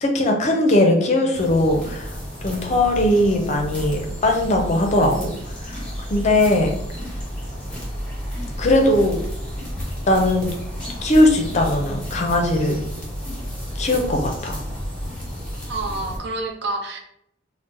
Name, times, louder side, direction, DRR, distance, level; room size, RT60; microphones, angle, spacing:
voice 1, 0.0-2.1 2.4-5.3 5.6-5.8 6.1-6.7 8.6-9.2 10.1-10.5 11.0-12.8 13.8-14.6, left 1 dB, 40° left, 3 dB, 0.5 m, -19 dB
sound 1, 1.3-16.2, equal, 5° left, 0.9 m, -31 dB
voice 2, 15.7-17.0, right 2 dB, 60° right, 4 dB, 0.5 m, -28 dB
2.7 x 2.1 x 3.7 m, 0.76 s
head